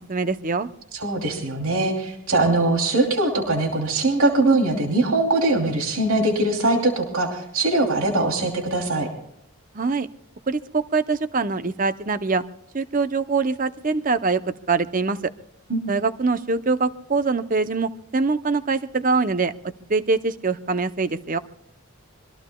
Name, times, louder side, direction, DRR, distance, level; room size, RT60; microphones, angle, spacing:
voice 1, 0.1-0.7 9.7-10.1 10.5-12.4 12.7-14.4 14.7-15.3 15.9-19.5 19.9-21.4, right 4 dB, 35° right, 12 dB, 0.7 m, -23 dB
voice 2, 0.9-9.1 15.7-15.8, right 2 dB, 75° right, 2 dB, 2.9 m, -21 dB
25.5 x 22.5 x 2.3 m, 0.76 s
head